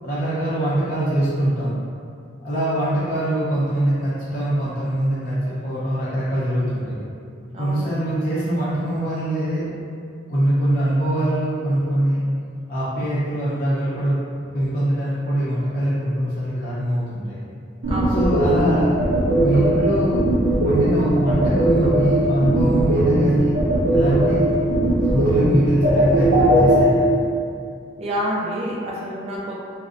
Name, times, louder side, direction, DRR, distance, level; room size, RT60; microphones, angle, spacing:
voice 1, 0.0-1.7 2.4-7.0 7.6-9.7 10.3-12.2 12.7-14.2 14.5-17.4 18.1-19.0 19.4-23.6 23.9-24.5 25.1-27.1, right 1 dB, 45° left, -10 dB, 0.5 m, -23 dB
voice 2, 7.5-8.1 17.9-18.3 28.0-29.5, equal, 30° right, -4 dB, 0.3 m, -28 dB
sound 1, 17.8-26.8, right 1 dB, 90° right, 0.7 m, -19 dB
2.4 x 2.0 x 2.4 m, 2.3 s
head